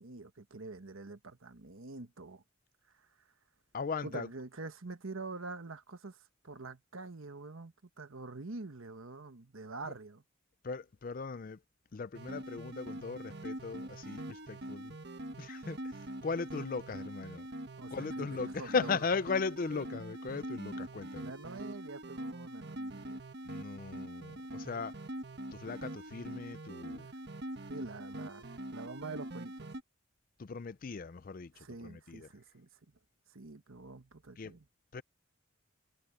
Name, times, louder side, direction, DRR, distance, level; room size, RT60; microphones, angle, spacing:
voice 1, 0.0-2.4 2.9-3.1 4.0-10.2 17.8-19.0 21.2-23.2 26.9-27.2 27.7-29.7 31.5-32.7 33.3-34.7, right 3 dB, 70° right, 1.3 m, -46 dB
voice 2, 3.7-4.3 10.6-11.6 11.9-15.0 15.4-15.8 16.2-17.5 17.9-21.3 23.4-24.9 25.5-27.1 30.4-31.5 31.8-32.3 34.4-34.5 34.9-35.0, left 4 dB, 40° left, 0.4 m, -37 dB
sound 1, 12.1-29.8, right 1 dB, 50° right, 1.5 m, -44 dB
head